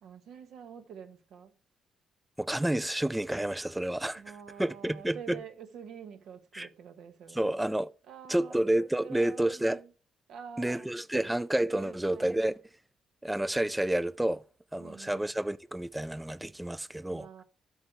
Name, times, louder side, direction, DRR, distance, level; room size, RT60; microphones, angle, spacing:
voice 1, 0.0-1.5 4.1-7.5 8.1-8.6 9.0-9.9 10.3-11.2 11.7-12.4 14.8-15.3 17.1-17.4, right 7 dB, 75° right, 1.2 m, -47 dB
voice 2, 2.4-4.2 4.6-5.4 6.5-6.7 7.3-7.9 8.3-9.8 10.6-12.5 13.2-14.4 14.7-17.4, right 1 dB, 10° right, 0.3 m, -30 dB
8.6 x 6.5 x 4.6 m
cardioid pair, 90°, 0 cm